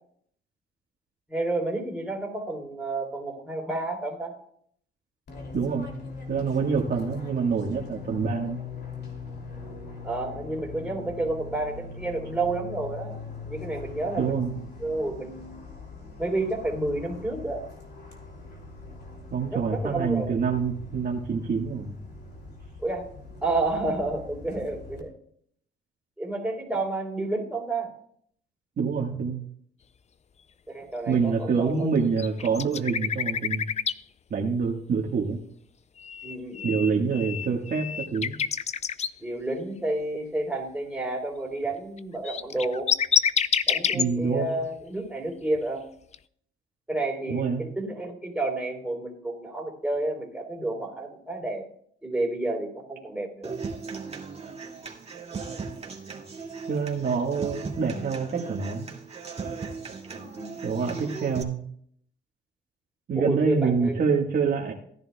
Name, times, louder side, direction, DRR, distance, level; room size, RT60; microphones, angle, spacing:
voice 1, 1.3-4.4 10.0-13.2 13.5-15.6 16.2-17.7 19.5-20.3 22.8-23.1 23.4-25.1 26.2-27.9 30.7-31.9 36.2-37.0 39.2-42.9 43.7-45.8 46.9-51.6 52.0-53.6 60.0-60.8 63.1-64.0, right 2 dB, 5° right, 0 dB, 3.6 m, -30 dB
Fixed-wing aircraft airplane, 5.3-25.0, left 4 dB, 55° left, 2.8 m, -41 dB
voice 2, 5.5-5.9 6.3-8.6 14.2-14.5 19.3-21.9 28.8-29.4 31.1-33.7 34.3-35.4 36.6-38.4 43.9-44.5 47.3-47.6 56.7-58.9 60.6-61.6 63.1-64.7, right 5 dB, 50° right, -1 dB, 1.6 m, -26 dB
sound 1, 32.2-34.0 36.0-39.1 42.0-42.1 42.2-44.0 46.1-46.2, left 7 dB, 35° left, 0.4 m, -27 dB
Human voice / Acoustic guitar, 53.4-61.4, right 4 dB, 30° right, 2.2 m, -37 dB
16.5 x 10.5 x 2.3 m, 0.63 s
cardioid pair, 90°, 20 cm